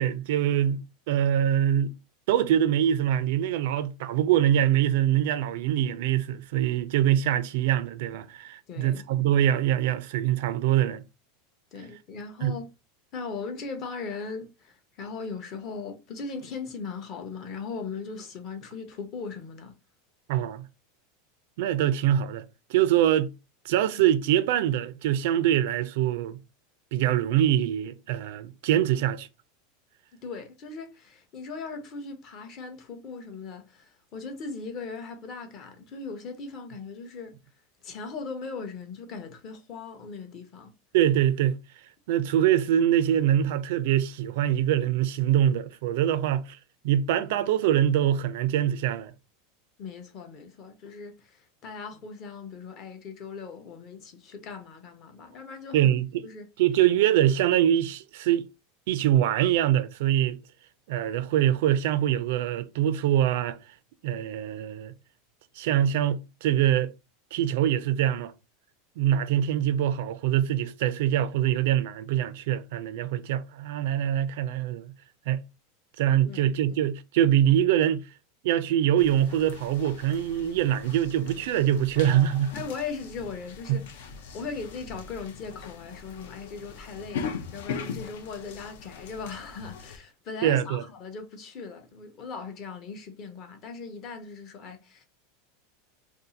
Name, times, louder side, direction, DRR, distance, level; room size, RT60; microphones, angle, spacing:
voice 1, 0.0-1.9 2.3-11.0 12.4-12.6 20.3-20.6 21.6-23.3 23.6-26.4 26.9-29.3 40.9-41.6 42.1-46.6 46.8-49.1 55.7-56.2 56.6-58.4 58.9-60.4 60.9-63.6 64.0-64.9 65.6-66.9 67.3-68.3 69.0-74.9 75.3-75.4 76.0-78.1 78.4-82.6 83.7-83.8 90.4-90.8, right 11 dB, 60° right, 0.4 m, -24 dB
voice 2, 8.7-9.3 11.7-12.7 13.1-19.7 30.2-37.4 37.8-40.7 49.8-56.5 76.2-76.8 82.5-84.1 84.3-95.0, left 4 dB, 35° left, 0.7 m, -39 dB
sound 1, 79.0-90.0, left 6 dB, 75° left, 0.6 m, -40 dB
2.6 x 2.4 x 3.9 m
supercardioid pair, 165°, 0 cm